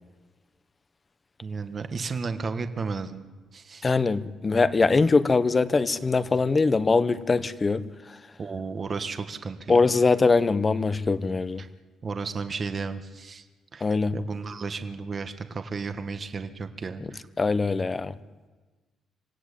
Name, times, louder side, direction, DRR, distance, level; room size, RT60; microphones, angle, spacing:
voice 1, 1.4-3.9 8.4-9.8 11.6-11.7 12.0-13.4 13.7-13.8 14.1-17.2, right 4 dB, 40° right, 1.6 m, -33 dB
voice 2, 3.8-7.8 9.7-11.6 13.8-14.1 17.4-18.2, left 4 dB, 30° left, 1.1 m, -22 dB
26.5 x 16.0 x 8.5 m
cardioid pair, 90°, 0 cm